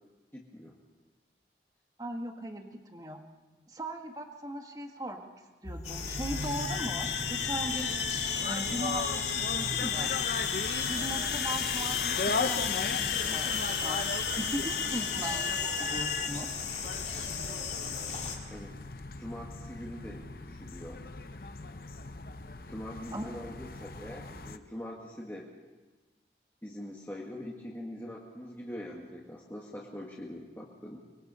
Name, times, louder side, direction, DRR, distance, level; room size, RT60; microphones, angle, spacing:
voice 1, 0.3-0.8 18.5-18.8 19.2-21.0 22.7-25.5 26.6-31.0, left 1 dB, 10° left, -3 dB, 1.8 m, -43 dB
voice 2, 2.0-3.2 3.7-5.3 5.6-7.9 8.4-10.1 10.8-14.1 14.4-16.5 23.1-23.3, right 1 dB, 20° right, 4 dB, 1.6 m, -39 dB
sound 1, 5.6-16.3, left 6 dB, 90° left, 2.1 m, -34 dB
sound 2, 5.8-18.4, left 6 dB, 40° left, 2.6 m, -37 dB
sound 3, 6.4-24.6, left 4 dB, 55° left, 0.8 m, -38 dB
25.0 x 20.5 x 5.5 m, 1.2 s
head